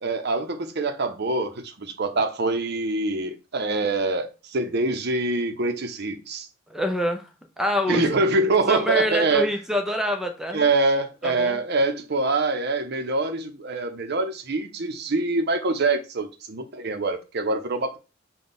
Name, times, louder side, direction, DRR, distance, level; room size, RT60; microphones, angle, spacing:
voice 1, 0.0-6.5 7.9-9.5 10.5-18.0, right 3 dB, 55° right, 0.7 m, -25 dB
voice 2, 6.7-7.3 7.6-8.0 8.7-10.6 11.2-11.6, left 1 dB, ahead, 0.5 m, -25 dB
5.5 x 2.3 x 4.0 m
head